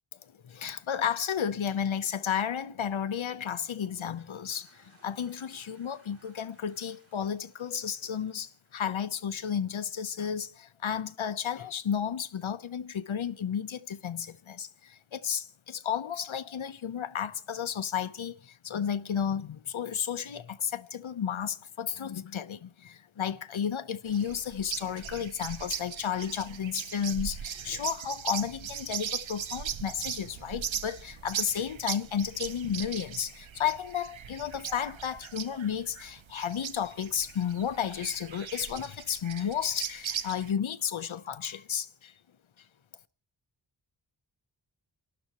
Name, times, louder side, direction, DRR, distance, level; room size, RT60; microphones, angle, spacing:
voice 1, 0.4-42.1, left 8 dB, 85° left, 1.0 m, -33 dB
Toilet flush, 3.8-9.8, right 1 dB, 30° right, 5.1 m, -63 dB
sound 1, 24.1-40.5, right 8 dB, 75° right, 0.9 m, -39 dB
sound 2, 29.7-33.1, right 3 dB, 90° right, 3.7 m, -61 dB
28.5 x 12.0 x 3.0 m
wide cardioid pair, 95°, 47 cm